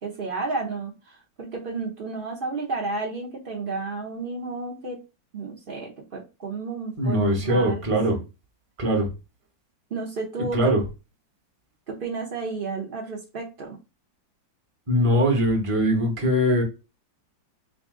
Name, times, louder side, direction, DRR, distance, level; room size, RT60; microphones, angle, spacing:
voice 1, 0.0-5.0 5.3-7.8 8.1-8.2 9.9-10.7 11.9-13.8, right 3 dB, 85° right, 0.4 m, -32 dB
voice 2, 7.0-8.2 8.8-9.1 10.5-10.8 14.9-16.6, equal, 30° right, 0.6 m, -21 dB
3.9 x 2.5 x 3.6 m
omnidirectional pair, 2.0 m